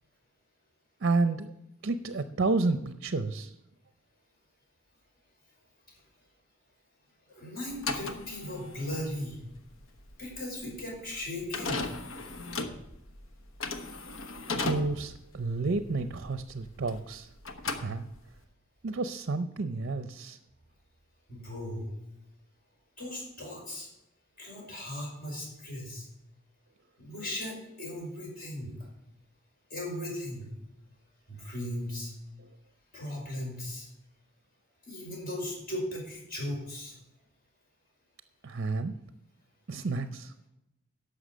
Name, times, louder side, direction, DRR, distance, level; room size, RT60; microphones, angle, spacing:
voice 1, 1.0-1.5 1.8-3.5 14.5-17.3 17.7-18.1 18.8-20.4 32.4-32.5 38.4-39.0 39.7-40.3, right 3 dB, 55° right, 10 dB, 0.6 m, -30 dB
voice 2, 7.3-9.4 10.2-11.9 21.3-21.9 23.0-23.9 24.4-26.1 27.0-28.8 29.7-30.5 31.3-32.1 32.9-33.9 34.9-36.9, left 1 dB, 45° left, -2 dB, 5.3 m, -37 dB
sound 1, 7.7-17.2 17.4-18.4, left 3 dB, 65° left, 1.1 m, -37 dB
11.5 x 6.8 x 6.6 m, 0.87 s
head